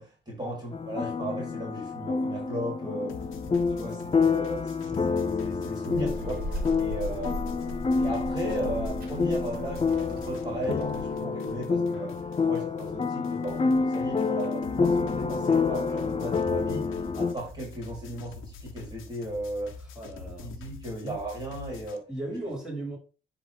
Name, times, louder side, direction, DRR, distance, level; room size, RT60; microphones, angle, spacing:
voice 1, 0.0-3.1 3.5-19.7 20.4-22.0, right 1 dB, 20° right, 4.1 m, -36 dB
sound 1, 0.7-17.3, left 4 dB, 30° left, 0.7 m, -28 dB
sound 2, 3.1-10.7 10.9-22.0, left 4 dB, 90° left, 1.1 m, -46 dB
Child speech kid speaking, 5.9-11.2, equal, 50° right, 2.4 m, -37 dB
voice 2, 19.8-20.5 21.0-21.2 22.1-23.0, right 2 dB, ahead, 4.3 m, -36 dB
10.0 x 3.9 x 3.6 m
cardioid pair, 90°, 20 cm